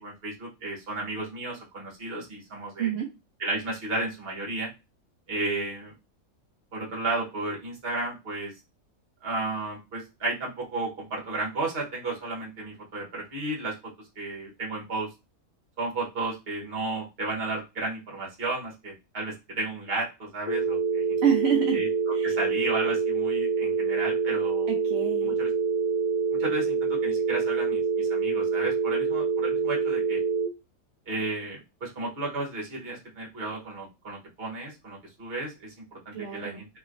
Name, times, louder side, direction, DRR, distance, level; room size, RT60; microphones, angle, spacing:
voice 1, 0.0-2.9 3.4-4.7 5.3-5.9 6.7-8.6 9.2-15.1 15.8-21.0 21.7-21.9 22.2-24.7 25.2-25.5 26.3-30.2 31.1-36.7, right 2 dB, 45° right, -3 dB, 1.3 m, -33 dB
sound 1, 20.5-30.5, right 5 dB, 65° left, 0.4 m, -26 dB
voice 2, 21.2-21.8 22.1-22.3 24.7-25.4 36.1-36.6, right 8 dB, 60° right, 0 dB, 0.7 m, -27 dB
3.0 x 2.9 x 2.5 m, 0.26 s
omnidirectional pair, 1.5 m